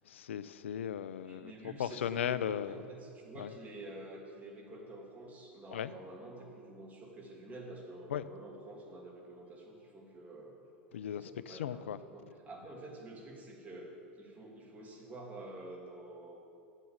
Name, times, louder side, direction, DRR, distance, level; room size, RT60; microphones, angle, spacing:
voice 1, 0.1-2.8 3.4-3.5 5.7-5.9 8.1-8.2 10.9-12.0, left 9 dB, 75° left, 16 dB, 0.4 m, -37 dB
voice 2, 1.2-10.6 11.1-16.4, right 1 dB, 25° right, -1 dB, 2.6 m, -48 dB
9.1 x 7.5 x 8.8 m, 2.6 s
hypercardioid pair, 90°, 7 cm